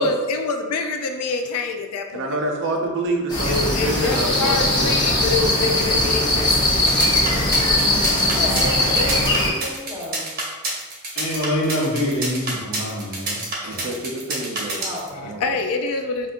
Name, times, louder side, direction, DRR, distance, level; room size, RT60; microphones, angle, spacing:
voice 1, 0.0-2.4 3.4-6.7 15.1-16.3, left 3 dB, 80° left, 5 dB, 0.3 m, -26 dB
voice 2, 2.1-4.9 7.0-7.2 13.6-14.9 15.2-15.5, right 2 dB, 60° right, 1 dB, 0.5 m, -27 dB
sound 1, 3.3-9.5, left 1 dB, 20° left, 0.8 m, -20 dB
sound 2, 6.7-15.1, right 2 dB, 45° right, 0.9 m, -28 dB
voice 3, 8.2-10.3 14.8-15.3, equal, 20° right, -6 dB, 1.0 m, -32 dB
voice 4, 11.1-13.9, equal, 65° left, -6 dB, 1.2 m, -25 dB
5.0 x 2.5 x 2.4 m, 1.3 s
head